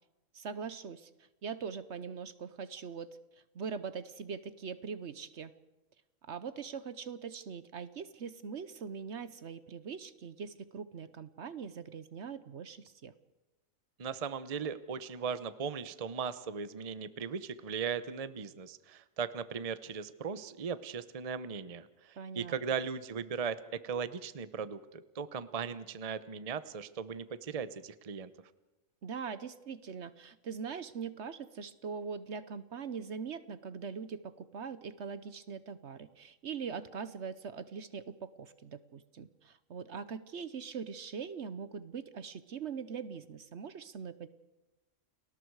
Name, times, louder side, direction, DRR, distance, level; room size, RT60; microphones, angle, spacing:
voice 1, 0.3-1.1 1.4-3.2 3.5-5.5 6.2-13.1 22.2-22.5 29.0-44.3, right 6 dB, 60° right, 14 dB, 1.1 m, -42 dB
voice 2, 14.0-28.3, right 6 dB, 30° right, 14 dB, 0.8 m, -38 dB
30.0 x 20.5 x 4.8 m, 1.0 s
omnidirectional pair, 1.4 m